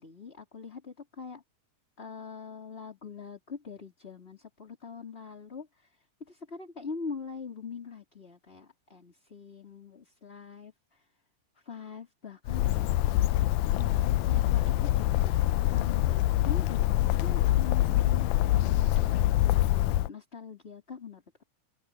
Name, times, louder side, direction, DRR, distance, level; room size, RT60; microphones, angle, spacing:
voice 1, 0.0-1.4 2.0-11.1 11.6-12.7 13.7-15.4 15.7-21.4, left 5 dB, 20° left, 3.9 m, -43 dB
Bird, 12.5-20.1, left 15 dB, 85° left, 2.0 m, -25 dB
open air
omnidirectional pair, 3.4 m